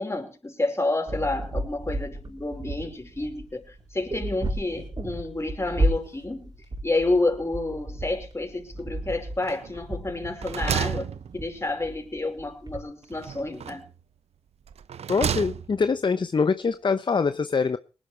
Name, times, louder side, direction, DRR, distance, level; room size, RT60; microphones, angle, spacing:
voice 1, 0.0-6.5 6.8-13.9, left 2 dB, 25° left, 5.3 m, -29 dB
sound 1, 1.1-12.8, right 1 dB, 45° right, 5.5 m, -32 dB
sound 2, 9.4-9.9 10.2-11.8 13.1-14.0 14.7-15.9, right 8 dB, 80° right, 0.7 m, -32 dB
voice 2, 15.1-17.8, left 5 dB, 50° left, 0.8 m, -24 dB
20.0 x 11.5 x 4.6 m
cardioid pair, 50°, 11 cm